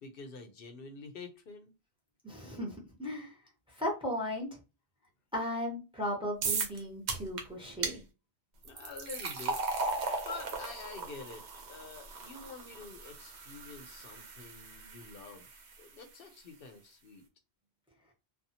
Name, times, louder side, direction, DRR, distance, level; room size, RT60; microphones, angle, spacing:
voice 1, 0.0-1.7 8.6-9.6 10.2-11.4 11.7-15.5 15.8-17.2, left 4 dB, 65° left, 6 dB, 0.8 m, -47 dB
voice 2, 2.2-3.4 3.8-4.5 5.3-8.0, left 1 dB, 5° right, -1 dB, 0.9 m, -36 dB
sound 1, 6.4-6.8 7.1-7.4 7.8-8.0 8.6-15.8, right 3 dB, 85° right, 1.0 m, -37 dB
2.6 x 2.4 x 2.7 m, 0.29 s
omnidirectional pair, 1.1 m